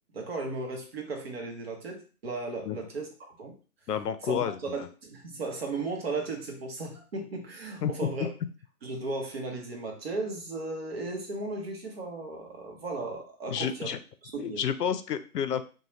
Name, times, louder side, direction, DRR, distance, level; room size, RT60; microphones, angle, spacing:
voice 1, 0.1-3.5 4.2-4.3 4.6-8.3 8.8-14.0 14.2-14.6, right 3 dB, 40° right, 2 dB, 0.8 m, -36 dB
voice 2, 3.9-4.9 7.8-7.9 13.5-14.0 14.4-15.6, left 8 dB, 80° left, 11 dB, 0.6 m, -30 dB
2.6 x 2.2 x 3.1 m, 0.37 s
hypercardioid pair, 150°, 47 cm